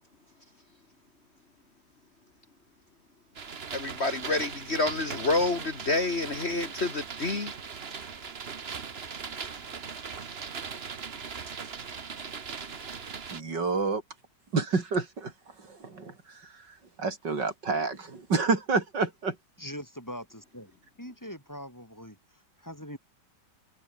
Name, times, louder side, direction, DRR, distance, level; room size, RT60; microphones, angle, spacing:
sound 1, 3.4-13.4, right 6 dB, 40° right, 1.4 m, -39 dB
voice 1, 3.7-7.5, left 2 dB, 40° left, 2.1 m, -28 dB
voice 2, 13.3-14.0 14.5-19.4, right 4 dB, 80° right, 4.2 m, -29 dB
voice 3, 19.6-20.7 21.0-23.0, equal, 10° left, 5.9 m, -42 dB
omnidirectional pair, 1.9 m